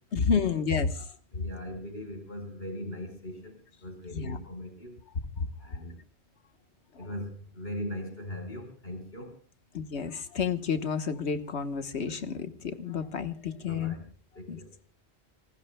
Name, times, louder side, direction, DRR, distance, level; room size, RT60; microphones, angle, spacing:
voice 1, 0.1-0.9 4.1-4.4 5.4-5.5 9.7-13.9 14.5-14.6, left 6 dB, 85° left, 9 dB, 1.6 m, -30 dB
voice 2, 1.3-4.9 5.6-6.0 7.0-9.3 13.6-14.0 14.3-14.7, left 1 dB, 60° left, 5 dB, 5.1 m, -40 dB
27.0 x 20.0 x 2.2 m, 0.41 s
omnidirectional pair, 1.1 m